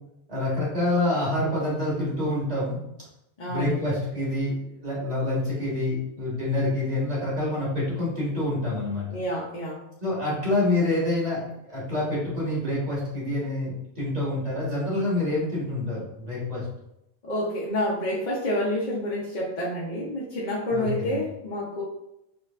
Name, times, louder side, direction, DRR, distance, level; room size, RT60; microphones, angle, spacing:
voice 1, 0.3-2.8 3.4-4.5 4.8-9.0 10.0-16.6 20.7-21.2, left 2 dB, 35° right, -6 dB, 1.5 m, -27 dB
voice 2, 3.4-3.9 9.1-9.8 17.2-21.8, left 1 dB, 45° left, -5 dB, 0.7 m, -28 dB
4.5 x 3.0 x 2.4 m, 0.83 s
omnidirectional pair, 1.3 m